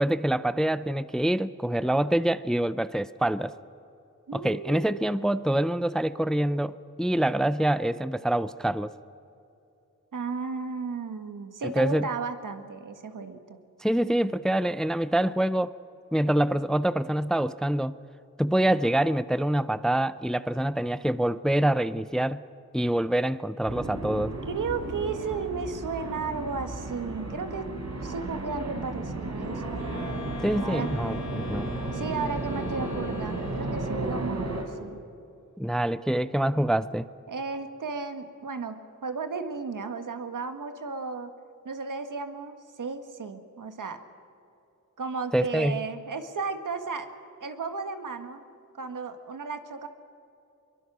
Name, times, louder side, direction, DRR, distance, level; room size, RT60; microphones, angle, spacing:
voice 1, 0.0-3.5 4.3-8.9 11.6-12.1 13.8-15.8 16.1-18.0 18.4-22.4 22.7-24.4 30.4-31.7 35.6-37.1 45.3-45.8, right 1 dB, ahead, 15 dB, 0.5 m, -26 dB
voice 2, 4.3-5.1 10.1-13.6 24.5-27.7 28.0-29.9 30.6-30.9 31.9-35.0 37.3-41.3 41.6-44.0 45.0-47.1 47.4-48.4 48.7-49.9, right 4 dB, 75° right, 8 dB, 1.7 m, -34 dB
sound 1, 23.7-34.6, right 2 dB, 60° right, 3.9 m, -34 dB
Wind instrument woodwind instrument, 29.7-34.1, left 2 dB, 65° left, 4.8 m, -40 dB
23.0 x 22.5 x 6.1 m, 2.7 s
wide cardioid pair, 70°, 31 cm